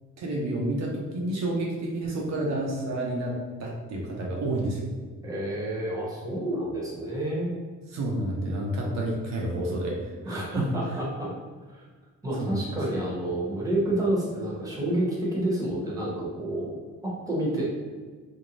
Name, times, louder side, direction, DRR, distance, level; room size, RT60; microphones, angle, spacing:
voice 1, 0.2-4.8 7.9-10.7 12.3-13.0, right 1 dB, 65° right, -2 dB, 0.6 m, -30 dB
voice 2, 5.2-7.5 10.2-11.3 11.7-11.8 12.2-16.8 17.0-17.6, right 1 dB, 10° right, -5 dB, 0.9 m, -29 dB
2.6 x 2.0 x 3.0 m, 1.5 s
cardioid pair, 90°, 30 cm